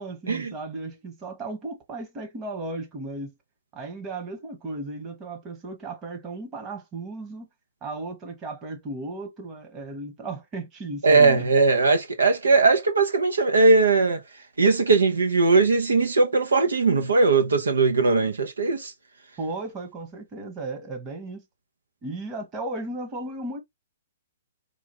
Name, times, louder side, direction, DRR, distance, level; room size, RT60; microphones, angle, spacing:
voice 1, 0.0-3.4 3.7-7.5 7.8-11.4 19.4-21.4 22.0-23.6, right 2 dB, 25° right, 1.4 m, -35 dB
voice 2, 11.0-14.2 14.6-18.9, right 3 dB, 90° right, 1.0 m, -19 dB
4.8 x 2.5 x 3.1 m
hypercardioid pair, 135°, 0 cm